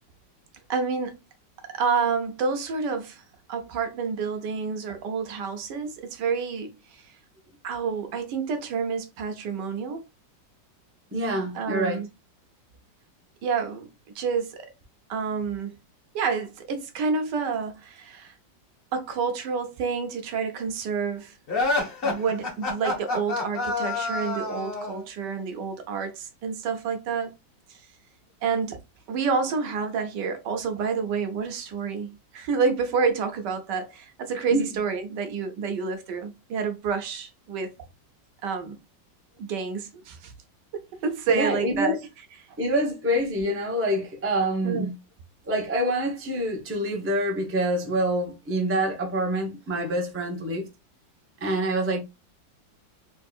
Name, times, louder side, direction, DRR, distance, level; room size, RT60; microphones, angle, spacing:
voice 1, 0.7-1.2 1.7-3.2 3.5-7.0 7.6-10.0 11.5-12.1 13.4-13.9 14.1-14.7 15.1-15.7 16.1-18.3 18.9-21.3 22.0-27.3 27.7-27.8 28.4-28.8 29.1-37.7 38.4-38.8 39.4-40.3 41.0-42.0 44.6-44.9, right 5 dB, 75° right, 1.3 m, -28 dB
voice 2, 11.1-12.0 34.5-34.7 41.3-42.0 42.6-44.9 45.5-50.6 51.4-52.0, right 1 dB, 20° right, 0.4 m, -26 dB
sound 1, 21.5-25.0, left 3 dB, 35° left, 1.3 m, -27 dB
3.6 x 3.3 x 2.4 m
omnidirectional pair, 2.0 m